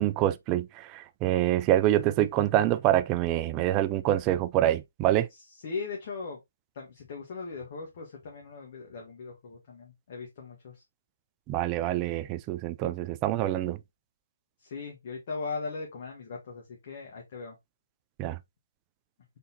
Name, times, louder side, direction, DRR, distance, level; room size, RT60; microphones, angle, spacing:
voice 1, 0.0-5.3 11.5-13.8 18.2-18.4, right 13 dB, 20° right, 0.3 m, -26 dB
voice 2, 5.6-6.4 6.7-10.8 14.6-17.5, left 4 dB, 40° left, 1.2 m, -39 dB
4.1 x 3.7 x 2.7 m
figure-of-eight pair, 145°, 0 cm